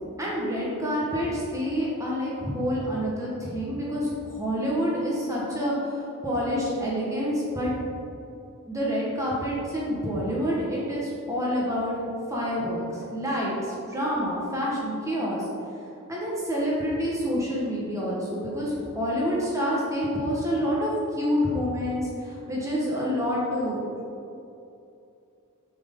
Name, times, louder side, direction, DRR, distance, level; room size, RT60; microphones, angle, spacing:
voice 1, 0.2-7.7 8.7-11.9 12.3-15.4 16.1-23.8, equal, 15° right, -5 dB, 1.3 m, -28 dB
6.9 x 6.3 x 3.7 m, 2.7 s
head